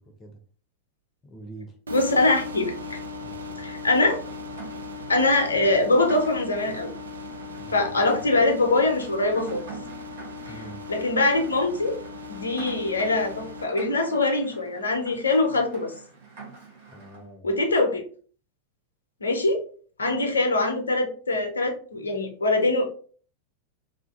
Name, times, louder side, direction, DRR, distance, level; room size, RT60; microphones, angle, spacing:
voice 1, 1.2-1.7 3.2-3.6 7.5-8.0 10.5-10.8 16.9-17.5, right 2 dB, 25° left, 4 dB, 0.6 m, -44 dB
voice 2, 1.9-3.0 3.6-4.2 5.1-6.9 7.7-9.6 10.5-10.6 10.9-12.0 12.3-15.9 17.4-18.0 19.2-19.7 20.0-22.9, left 2 dB, 75° left, 4 dB, 0.5 m, -23 dB
sound 1, 1.9-13.6, left 3 dB, 70° right, 0.3 m, -38 dB
Rain, 3.9-17.2, right 5 dB, 55° right, 0.8 m, -45 dB
2.5 x 2.4 x 2.3 m, 0.43 s
figure-of-eight pair, 90°, 0 cm